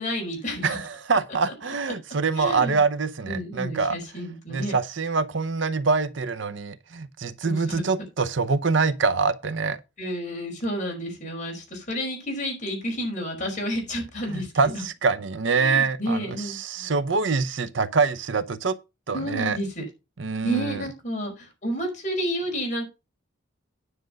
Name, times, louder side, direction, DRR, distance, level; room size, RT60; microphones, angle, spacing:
voice 1, 0.0-0.8 2.4-2.8 3.3-4.7 7.4-8.0 10.0-14.8 15.6-16.9 19.1-19.8 20.4-22.8, equal, 40° left, 5.4 m, -30 dB
voice 2, 0.6-4.0 4.5-9.8 14.3-18.8 19.1-19.6 20.2-20.8, right 4 dB, 70° right, 0.8 m, -25 dB
9.9 x 6.6 x 5.2 m
head